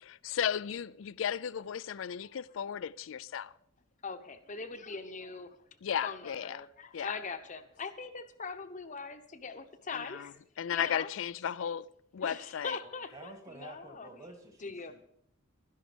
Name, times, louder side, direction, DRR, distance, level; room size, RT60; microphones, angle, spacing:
voice 1, 0.0-3.6 5.8-6.7 6.9-7.2 9.9-11.9 12.1-12.8, left 8 dB, 70° left, 0.4 m, -35 dB
voice 2, 4.0-5.6 6.0-10.3 10.7-11.1 12.2-14.1 14.6-14.9, left 4 dB, 40° left, 0.9 m, -41 dB
voice 3, 12.8-15.0, right 2 dB, 30° right, 1.7 m, -50 dB
12.0 x 11.0 x 5.1 m
head